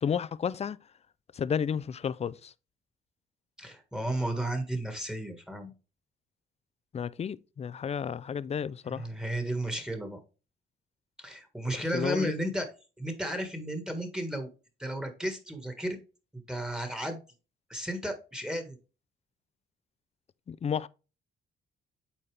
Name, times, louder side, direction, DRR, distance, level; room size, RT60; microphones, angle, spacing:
voice 1, 0.0-0.8 1.3-2.5 6.9-9.1 11.9-12.3 20.5-20.9, left 7 dB, 30° left, 0.4 m, -32 dB
voice 2, 3.6-5.7 8.9-10.2 11.2-12.7 13.0-14.5 14.8-16.0 16.5-17.2 17.7-18.8, right 1 dB, 5° right, 1.6 m, -33 dB
8.6 x 4.2 x 3.4 m
cardioid pair, 90°, 20 cm